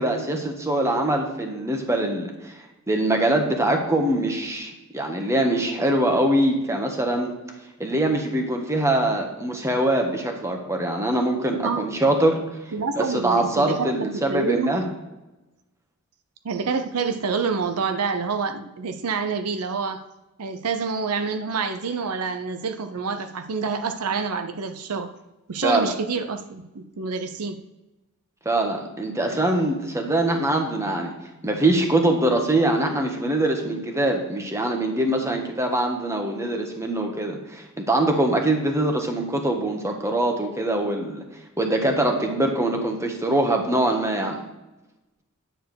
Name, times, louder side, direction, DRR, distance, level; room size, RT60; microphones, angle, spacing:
voice 1, 0.0-2.5 2.9-7.3 7.8-12.4 13.0-14.8 25.6-25.9 28.4-31.1 31.4-41.2 41.6-44.4, right 1 dB, 15° right, 1.3 m, -23 dB
voice 2, 12.7-14.7 16.4-20.1 20.4-25.1 25.5-27.6, right 5 dB, 80° right, 0.7 m, -27 dB
10.0 x 4.4 x 6.7 m
head